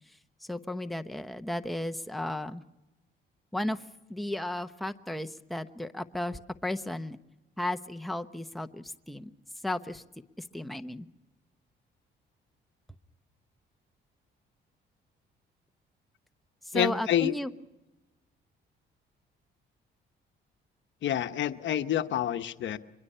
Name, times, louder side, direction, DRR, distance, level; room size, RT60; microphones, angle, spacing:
voice 1, 0.0-2.6 3.5-7.2 7.6-9.3 9.6-10.0 10.4-11.1 16.6-17.5, left 1 dB, ahead, 8 dB, 0.9 m, -34 dB
voice 2, 16.7-17.3 21.0-22.8, left 11 dB, 70° left, 9 dB, 1.0 m, -28 dB
24.5 x 22.0 x 5.6 m, 1.0 s
cardioid pair, 90°, 20 cm